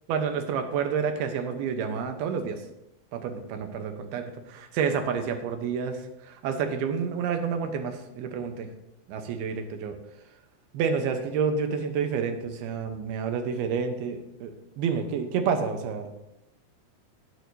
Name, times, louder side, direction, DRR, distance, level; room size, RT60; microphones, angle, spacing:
voice 1, 0.1-2.6 3.1-6.0 6.2-8.7 9.1-10.0 10.7-16.1, right 6 dB, 85° right, 6 dB, 2.9 m, -29 dB
18.0 x 6.5 x 2.7 m, 0.88 s
omnidirectional pair, 4.3 m